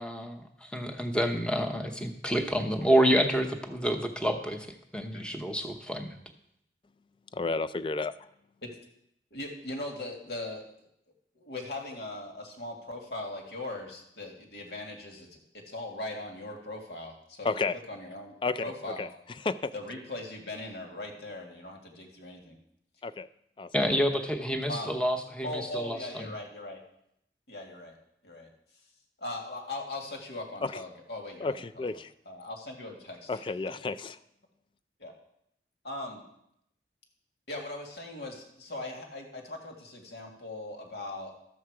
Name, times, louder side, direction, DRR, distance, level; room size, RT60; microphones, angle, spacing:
voice 1, 0.0-4.7 4.9-6.1 23.7-26.3, equal, 5° left, 4 dB, 0.8 m, -28 dB
voice 2, 7.3-8.2 17.4-17.8 18.4-18.6 19.0-19.1 19.4-19.7 23.0-23.3 23.6-23.7 30.6-30.8 31.4-32.1 33.3-34.2, left 3 dB, 30° left, 14 dB, 0.3 m, -31 dB
voice 3, 9.3-10.6 11.4-15.3 15.5-17.5 17.9-18.4 18.6-19.1 19.7-22.6 24.7-25.0 25.4-26.8 27.5-28.0 28.2-28.5 29.2-31.9 32.3-33.3 33.8-33.9 35.0-35.1 35.8-36.2 37.5-41.3, left 2 dB, 70° left, 2 dB, 1.9 m, -39 dB
12.5 x 7.3 x 4.7 m, 0.76 s
head